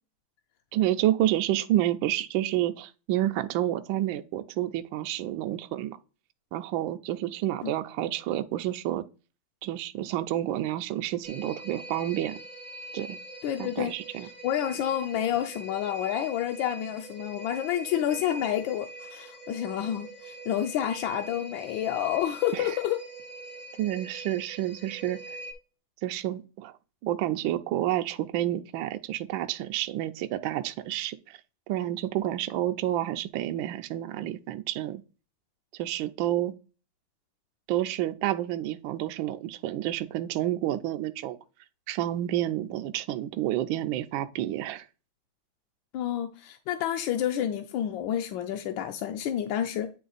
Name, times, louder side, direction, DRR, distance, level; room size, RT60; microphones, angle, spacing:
voice 1, 0.7-6.0 6.5-9.0 9.6-12.4 12.9-13.2 13.6-14.3 22.5-22.7 23.7-25.4 26.0-26.7 27.0-31.4 31.7-35.0 35.7-36.5 37.7-41.4 41.9-44.9, right 13 dB, 75° right, 1.2 m, -29 dB
sound 1, 11.2-25.5, right 2 dB, 10° left, 0.6 m, -43 dB
voice 2, 13.4-13.9 14.4-23.0 45.9-49.9, left 10 dB, 70° left, 1.2 m, -29 dB
9.3 x 3.3 x 4.0 m
omnidirectional pair, 2.4 m